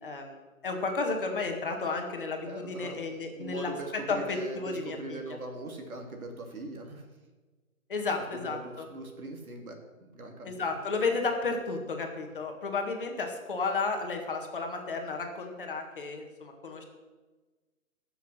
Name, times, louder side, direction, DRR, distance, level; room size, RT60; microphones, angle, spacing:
voice 1, 0.0-5.2 7.9-8.9 10.4-16.8, left 4 dB, 40° left, 4 dB, 1.7 m, -33 dB
voice 2, 2.5-3.0 3.4-7.0 8.4-9.7 10.1-10.6, right 2 dB, 80° right, 3 dB, 2.9 m, -40 dB
16.0 x 7.0 x 6.4 m, 1.3 s
hypercardioid pair, 175°, 42 cm